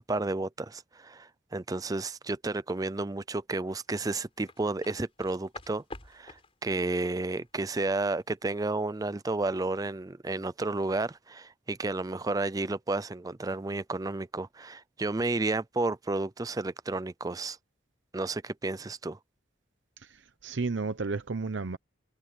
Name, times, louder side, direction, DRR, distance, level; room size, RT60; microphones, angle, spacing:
voice 1, 0.0-17.6 18.1-19.2, right 2 dB, 20° right, 0.4 m, -32 dB
sound 1, 3.8-9.0 9.3-9.5, left 2 dB, 30° left, 4.6 m, -49 dB
voice 2, 20.0-21.8, right 3 dB, 75° right, 0.8 m, -33 dB
head